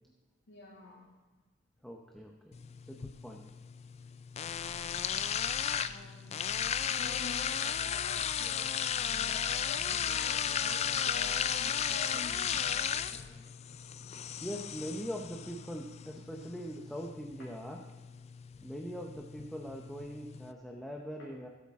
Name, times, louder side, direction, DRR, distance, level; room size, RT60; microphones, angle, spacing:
voice 1, 0.5-1.1 4.8-5.2 5.7-6.6 6.9-13.2 17.4-17.5 21.2-21.3, left 2 dB, 80° left, -5 dB, 2.2 m, -49 dB
voice 2, 1.8-2.6 2.9-3.5 14.4-17.8 18.6-21.5, equal, ahead, 0 dB, 0.8 m, -42 dB
sound 1, 2.5-20.5, left 8 dB, 35° left, 0.3 m, -35 dB
16.0 x 8.5 x 3.7 m, 1.3 s
head